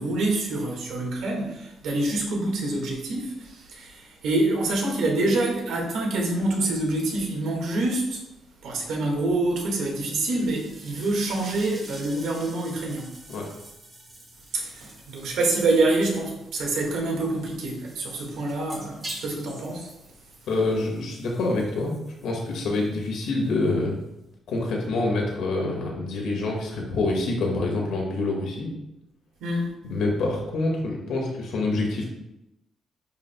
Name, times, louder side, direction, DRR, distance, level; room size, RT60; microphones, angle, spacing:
voice 1, 0.0-8.2 8.6-13.1 14.5-19.9 29.4-29.7, right 2 dB, 85° right, -1 dB, 1.9 m, -26 dB
sound 1, 10.1-24.4, right 1 dB, 25° right, 2.3 m, -47 dB
voice 2, 20.5-21.9 22.2-24.0 24.5-28.7 29.9-32.1, left 2 dB, 80° left, 0 dB, 1.9 m, -26 dB
10.5 x 4.9 x 2.3 m, 0.90 s
cardioid pair, 150°, 0 cm